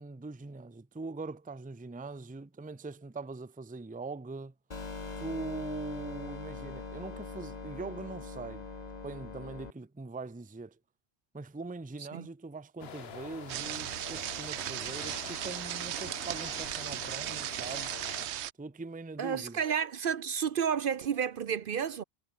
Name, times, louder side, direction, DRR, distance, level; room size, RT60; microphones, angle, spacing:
voice 1, 0.0-4.5 5.2-8.7 9.0-10.8 11.3-18.0 18.6-19.6, right 3 dB, 10° right, 0.6 m, -42 dB
sound 1, 4.7-9.7, left 4 dB, 40° left, 1.6 m, -42 dB
sound 2, 12.8-18.3, left 8 dB, 70° left, 1.2 m, -46 dB
sound 3, 13.5-18.5, right 12 dB, 85° right, 0.9 m, -37 dB
voice 2, 19.2-22.0, right 7 dB, 60° right, 0.8 m, -31 dB
omnidirectional pair, 1.1 m